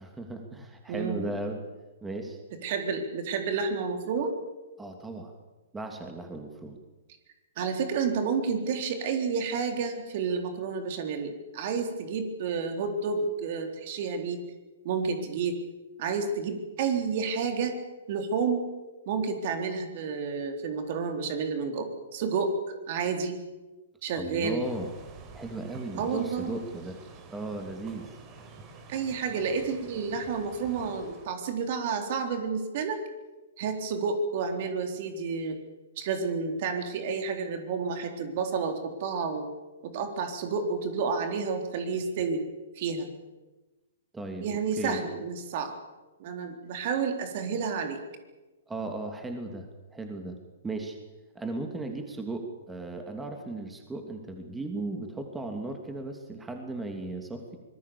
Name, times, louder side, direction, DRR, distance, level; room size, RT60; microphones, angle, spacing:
voice 1, 0.0-1.6 2.0-2.4 4.8-5.3 5.7-6.8 24.1-24.9 25.3-27.0 27.3-28.1 44.1-45.0 48.7-50.4 50.6-51.0 51.3-57.6, right 2 dB, 10° right, 4 dB, 3.0 m, -36 dB
voice 2, 0.9-1.3 2.6-4.4 7.6-14.4 14.8-15.5 16.0-17.8 18.1-18.7 19.1-22.6 22.9-23.4 24.0-24.6 26.0-26.5 28.9-33.0 33.6-35.6 36.0-39.5 39.8-42.4 42.8-43.1 44.4-45.7 46.2-48.0, right 5 dB, 50° right, 6 dB, 3.8 m, -30 dB
sound 1, 24.6-31.3, right 4 dB, 30° right, 4.6 m, -49 dB
25.0 x 20.5 x 7.1 m, 1.1 s
figure-of-eight pair, 120°, 0 cm